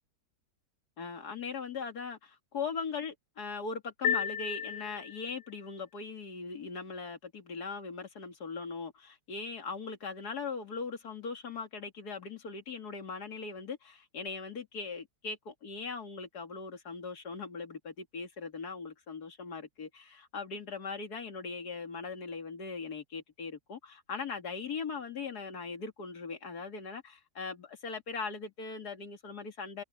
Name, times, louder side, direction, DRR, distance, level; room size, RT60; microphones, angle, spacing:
voice 1, 1.0-29.8, left 5 dB, 60° left, 2.6 m, -40 dB
sound 1, 4.0-5.5, left 8 dB, 80° left, 1.4 m, -33 dB
omnidirectional pair, 1.9 m